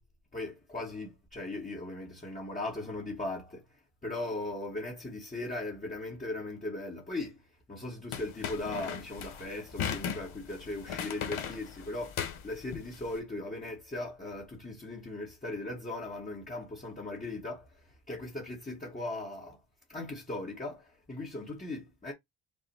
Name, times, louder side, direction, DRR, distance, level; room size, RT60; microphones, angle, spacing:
voice 1, 0.3-3.6 4.0-7.4 7.7-17.7 18.1-19.6 19.9-22.1, left 2 dB, 15° left, 0.9 m, -38 dB
sound 1, 8.1-13.1, left 8 dB, 85° left, 1.0 m, -38 dB
5.4 x 2.1 x 4.0 m
wide cardioid pair, 160°, 47 cm